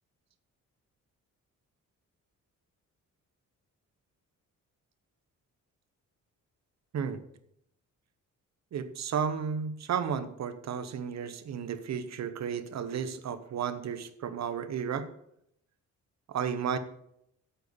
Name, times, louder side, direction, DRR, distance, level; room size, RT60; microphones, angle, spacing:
voice 1, 8.7-15.1 16.3-16.8, right 7 dB, 60° right, 12 dB, 1.0 m, -33 dB
8.2 x 8.0 x 6.8 m, 0.75 s
wide cardioid pair, 155°, 31 cm